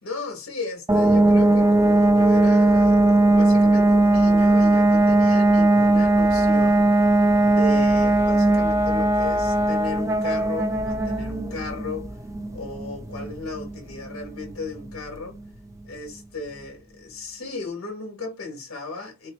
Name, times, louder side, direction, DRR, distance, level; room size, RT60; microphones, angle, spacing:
voice 1, 0.0-6.9 7.4-12.2 12.5-15.4 15.8-19.3, left 3 dB, 90° left, 1.2 m, -35 dB
sound 1, 0.9-15.5, right 2 dB, 15° right, 0.4 m, -19 dB
4.4 x 2.1 x 2.9 m
head